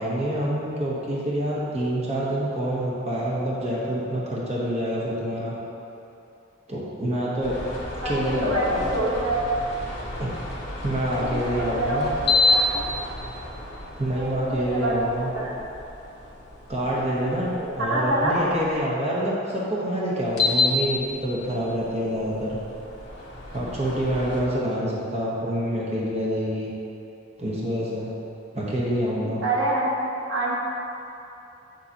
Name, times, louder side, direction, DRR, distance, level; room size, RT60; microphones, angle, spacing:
voice 1, 0.0-5.5 6.7-7.6 8.0-8.8 10.2-10.3 10.8-12.1 13.9-15.3 16.7-22.6 23.5-26.7 27.4-28.1 28.5-29.4, equal, 35° right, -6 dB, 1.1 m, -26 dB
sound 1, 7.4-18.8 20.2-24.4, left 2 dB, 60° left, 1.3 m, -30 dB
voice 2, 8.0-9.5 11.1-12.8 14.1-15.6 17.5-18.5 29.4-29.9 30.3-30.6, right 1 dB, 80° right, -5 dB, 1.3 m, -27 dB
7.8 x 6.7 x 2.9 m, 2.9 s
head